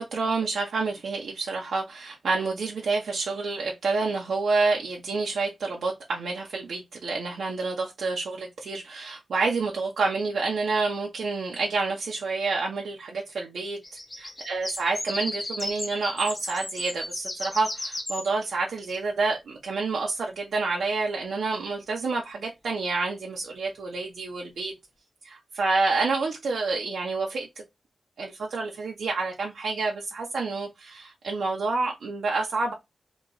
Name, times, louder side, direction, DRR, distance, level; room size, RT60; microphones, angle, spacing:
voice 1, 0.0-13.8 14.2-24.7 25.2-27.6 28.2-32.7, right 3 dB, 80° right, 0.5 m, -28 dB
sound 1, 13.8-18.3 18.9-19.0, left 1 dB, 20° left, 0.6 m, -35 dB
2.9 x 2.2 x 3.8 m
wide cardioid pair, 120°, 0 cm